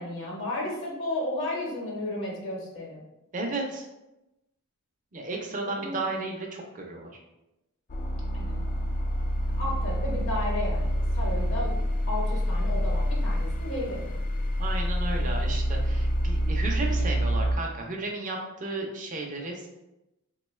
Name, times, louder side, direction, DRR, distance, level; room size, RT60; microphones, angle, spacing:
voice 1, 0.0-3.0 5.8-6.0 8.3-8.6 9.6-11.8 12.1-14.1, left 1 dB, 60° left, -3 dB, 0.9 m, -33 dB
voice 2, 3.3-3.8 5.1-7.1 14.6-19.7, right 2 dB, 35° right, 0 dB, 0.5 m, -33 dB
sound 1, 7.9-17.6, equal, 40° left, 0.3 m, -27 dB
3.6 x 2.2 x 3.1 m, 0.95 s
head